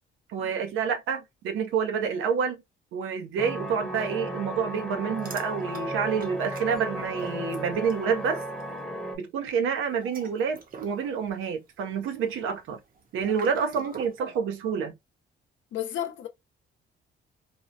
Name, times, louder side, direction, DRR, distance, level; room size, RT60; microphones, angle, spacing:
voice 1, 0.3-2.6 2.9-8.4 9.1-12.8 13.1-14.9, right 6 dB, 85° right, 0.7 m, -28 dB
sound 1, 3.4-9.2, equal, 5° left, 0.8 m, -35 dB
sound 2, 5.2-8.1 8.4-8.7 9.8-14.2, right 5 dB, 45° right, 0.8 m, -46 dB
voice 2, 15.7-16.3, left 11 dB, 75° left, 0.7 m, -32 dB
3.0 x 2.0 x 2.5 m
cardioid pair, 90°, 20 cm